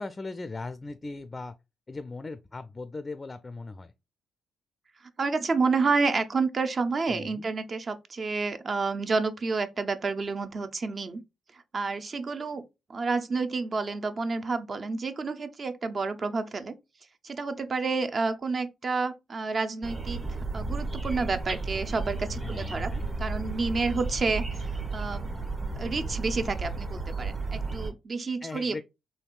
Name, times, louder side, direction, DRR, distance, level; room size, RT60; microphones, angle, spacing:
voice 1, 0.0-1.6 1.9-3.9 7.1-7.5 22.4-23.1 28.4-28.8, left 3 dB, 30° left, 0.3 m, -38 dB
voice 2, 5.2-11.2 11.5-12.6 12.9-16.7 17.2-20.2 20.5-22.9 23.2-25.3 25.8-28.8, right 4 dB, 50° right, 0.5 m, -29 dB
sound 1, 19.8-27.9, right 3 dB, 30° right, 1.5 m, -33 dB
3.4 x 2.7 x 2.3 m
supercardioid pair, 50°, 0 cm